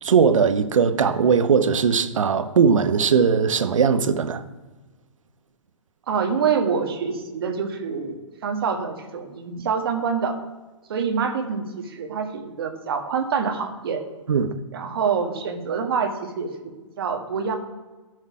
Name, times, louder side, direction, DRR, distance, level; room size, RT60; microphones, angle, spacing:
voice 1, 0.0-4.4 14.3-14.5, right 6 dB, 85° right, 1.0 m, -19 dB
voice 2, 6.1-10.4 10.9-14.0 14.7-17.6, right 6 dB, 50° right, 1.6 m, -26 dB
14.0 x 6.5 x 4.7 m
hypercardioid pair, 170°, 16 cm